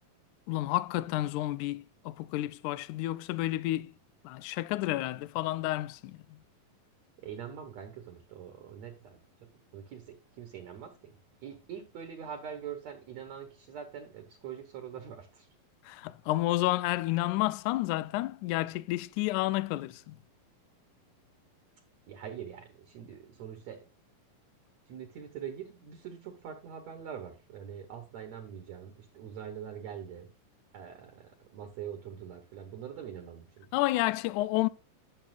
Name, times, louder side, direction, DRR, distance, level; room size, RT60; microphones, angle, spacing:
voice 1, 0.5-3.9 4.2-6.2 15.9-20.2 33.7-34.7, left 17 dB, 90° left, 1.7 m, -30 dB
voice 2, 7.2-9.2 9.7-11.1 11.4-15.5 22.1-23.8 24.9-30.3 30.7-33.7, right 8 dB, 60° right, 2.0 m, -43 dB
11.0 x 6.7 x 2.4 m
omnidirectional pair, 4.1 m